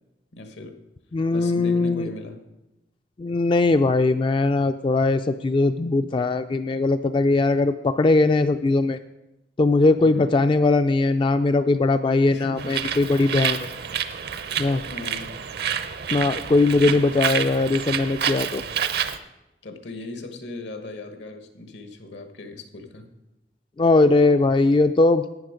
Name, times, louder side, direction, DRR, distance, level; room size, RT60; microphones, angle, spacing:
voice 1, 0.3-0.8 1.3-2.4 10.0-10.4 12.3-12.9 14.8-15.4 16.8-17.1 19.6-23.1, left 2 dB, 80° left, 7 dB, 1.3 m, -38 dB
voice 2, 1.1-2.1 3.2-9.0 9.6-13.7 14.6-14.8 16.1-18.6 23.8-25.3, left 3 dB, 30° left, 10 dB, 0.3 m, -20 dB
Bird, 12.6-19.2, right 8 dB, 60° right, 0.6 m, -28 dB
12.0 x 8.7 x 5.1 m, 0.97 s
head